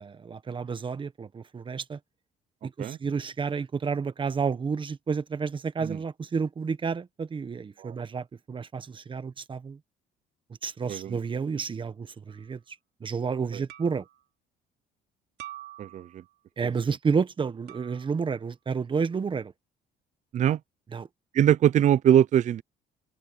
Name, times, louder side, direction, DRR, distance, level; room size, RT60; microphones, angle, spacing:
voice 1, 0.0-2.0 2.6-9.8 10.6-12.6 13.0-14.0 16.6-19.5 20.9-21.1, right 5 dB, 30° right, 1.2 m, -30 dB
sound 1, 12.3-12.5 13.7-14.2 15.4-16.3 17.7-18.3, right 13 dB, 75° right, 3.1 m, -46 dB
voice 2, 15.8-16.2 20.3-20.6 21.3-22.6, right 10 dB, 45° right, 0.5 m, -22 dB
cardioid pair, 110°, 17 cm